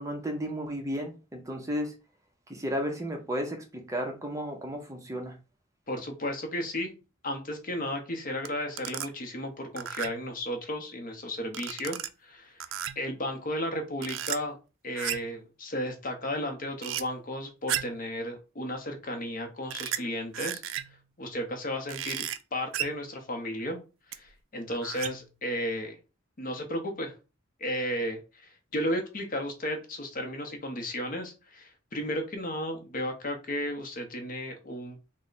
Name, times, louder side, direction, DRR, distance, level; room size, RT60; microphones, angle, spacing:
voice 1, 0.0-1.9 2.5-5.4, equal, 15° right, 3 dB, 0.6 m, -33 dB
voice 2, 5.9-6.9 7.2-12.6 13.0-14.6 14.8-20.6 21.2-22.2 22.5-23.8 24.1-26.0 26.4-27.1 27.6-35.0, left 1 dB, 45° left, 4 dB, 0.7 m, -34 dB
sound 1, 8.4-8.5 8.8-9.1 9.8-10.3 11.5-12.1 12.6-13.1 14.0-14.4 14.9-15.4 16.8-17.0 17.7-18.0 19.7-20.0 20.3-21.0 21.9-22.4 22.7-23.0 24.1-24.2 24.7-25.3, right 11 dB, 70° right, 0.3 m, -34 dB
3.2 x 2.1 x 3.9 m, 0.31 s
head